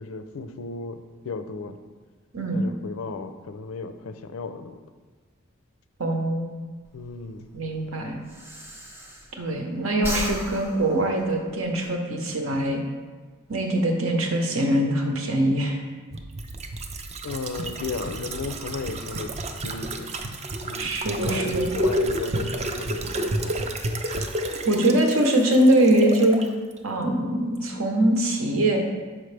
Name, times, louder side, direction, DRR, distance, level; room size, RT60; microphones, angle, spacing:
voice 1, 0.0-1.8 2.5-4.8 6.9-7.5 17.2-20.2 20.6-20.9 21.2-23.6, left 4 dB, 80° left, 9 dB, 0.4 m, -35 dB
voice 2, 6.0-6.5 7.5-8.2 9.4-12.8 13.5-15.8 20.8-21.7 24.0-24.3 24.6-26.4 26.8-28.8, right 1 dB, 85° right, 2 dB, 0.9 m, -23 dB
Breathing, 6.8-9.6 9.9-11.9, right 1 dB, 10° right, 0.8 m, -35 dB
sound 1, 16.1-26.5 26.8-26.9, right 1 dB, 30° right, 0.4 m, -30 dB
6.2 x 5.1 x 3.3 m, 1.4 s
head